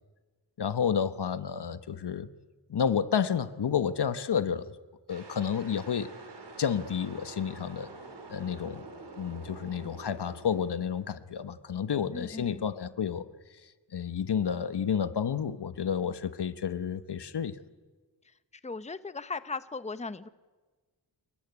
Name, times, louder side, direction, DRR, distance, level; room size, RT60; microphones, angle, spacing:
voice 1, 0.6-2.3 2.7-4.7 5.1-6.1 6.6-7.9 8.3-8.9 9.2-13.3 13.9-17.6, left 7 dB, 65° left, 13 dB, 1.2 m, -30 dB
sound 1, 5.1-11.4, right 3 dB, 65° right, 4.3 m, -47 dB
voice 2, 12.1-12.7 18.6-20.3, left 4 dB, 15° left, 13 dB, 0.9 m, -37 dB
28.5 x 14.5 x 9.8 m, 1.3 s
cardioid pair, 50°, 44 cm